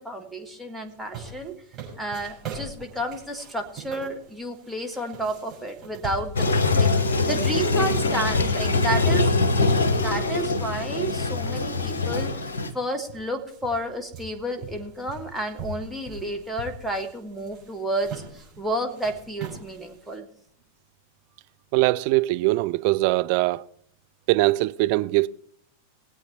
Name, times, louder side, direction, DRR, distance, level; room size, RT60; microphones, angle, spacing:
voice 1, 0.0-1.6 2.0-9.3 10.0-20.3, right 1 dB, 5° right, 1.7 m, -31 dB
sound 1, 0.9-11.0 11.4-11.5 12.4-12.5 12.7-20.2, right 4 dB, 25° right, 6.2 m, -42 dB
Toilet flush, 6.4-12.7, left 3 dB, 65° left, 1.0 m, -23 dB
voice 2, 21.7-23.7 24.3-25.3, right 20 dB, 45° right, 0.4 m, -21 dB
20.5 x 8.2 x 4.3 m
figure-of-eight pair, 90°, 0 cm